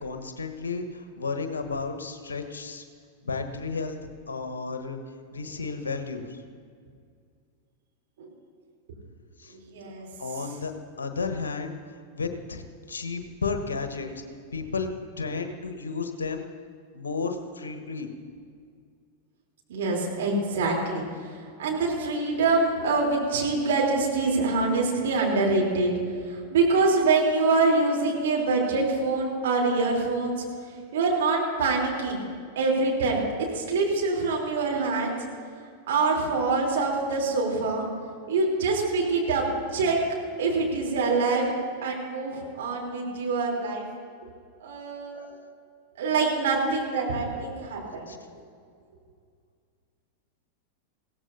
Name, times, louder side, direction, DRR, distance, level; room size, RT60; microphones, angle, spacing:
voice 1, 0.0-2.8 3.2-4.0 4.3-5.0 5.3-6.4 9.4-9.5 10.2-10.7 11.0-11.8 12.1-12.6 12.9-14.2 14.5-14.9 15.2-16.4 16.9-18.1 48.1-48.2, left 4 dB, 70° left, 7 dB, 1.3 m, -32 dB
voice 2, 9.5-10.1 19.7-25.9 26.2-30.4 30.9-32.2 32.5-35.1 35.9-37.8 38.3-39.4 39.7-40.0 40.4-41.5 41.8-43.8 44.6-45.2 46.0-48.2, right 3 dB, 60° right, -1 dB, 3.5 m, -25 dB
21.5 x 16.5 x 2.7 m, 2.2 s
figure-of-eight pair, 90°, 0 cm